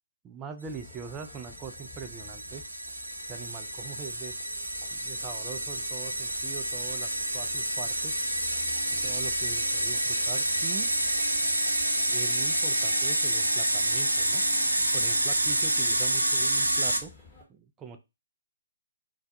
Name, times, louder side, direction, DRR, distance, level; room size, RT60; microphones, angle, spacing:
voice 1, 0.2-2.6 3.3-4.3 4.9-8.2 8.9-10.9 12.1-14.4 14.7-17.1 17.5-18.0, right 6 dB, 15° right, 7 dB, 0.3 m, -42 dB
sound 1, 0.6-17.4, left 4 dB, 20° left, 0.9 m, -53 dB
sound 2, 0.9-17.0, right 1 dB, 85° right, 0.4 m, -28 dB
sound 3, 8.0-13.3, left 2 dB, 70° left, 0.7 m, -41 dB
2.4 x 2.1 x 2.5 m, 0.25 s
figure-of-eight pair, 135°, 0 cm